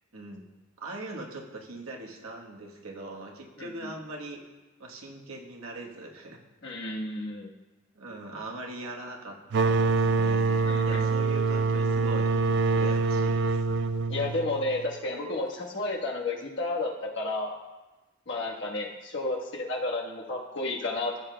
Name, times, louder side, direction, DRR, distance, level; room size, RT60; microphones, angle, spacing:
voice 1, 0.8-4.4 4.8-6.4 7.9-12.3 12.7-13.6, right 2 dB, 85° right, 1 dB, 1.2 m, -41 dB
voice 2, 6.6-7.5 10.6-11.0 14.1-17.5 18.3-21.2, left 2 dB, 55° left, -2 dB, 1.3 m, -32 dB
sound 1, 9.5-15.0, right 4 dB, 55° right, 0.3 m, -25 dB
14.5 x 7.4 x 2.2 m, 1.1 s
head